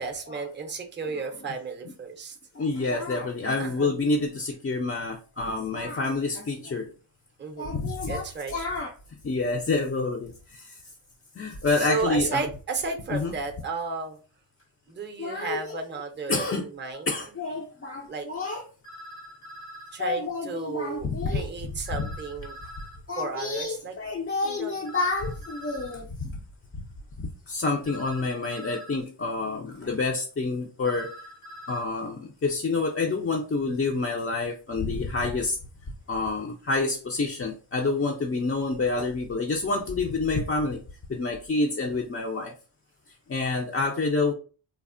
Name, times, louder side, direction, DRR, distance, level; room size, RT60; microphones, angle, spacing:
voice 1, 0.0-2.4 3.6-3.9 7.4-7.8 8.1-8.5 11.8-14.2 14.9-17.1 18.1-18.3 19.9-22.6 23.2-23.9 24.4-24.7, right 4 dB, 25° right, 4 dB, 0.5 m, -33 dB
voice 2, 2.6-6.9 7.6-8.9 9.2-10.8 11.4-12.5 13.1-13.3 15.2-15.8 16.3-16.6 17.1-18.6 20.0-21.5 22.0-22.1 23.1-26.3 27.2-31.1 31.7-35.6 36.1-40.8 41.1-42.5 43.3-44.3, left 3 dB, 30° left, 1 dB, 0.4 m, -28 dB
sound 1, 16.9-17.0 18.8-20.0 21.8-23.0 24.8-26.0 27.8-29.0 30.8-31.8, equal, 90° left, 1.1 m, -44 dB
3.3 x 2.0 x 2.4 m, 0.36 s
wide cardioid pair, 90°, 49 cm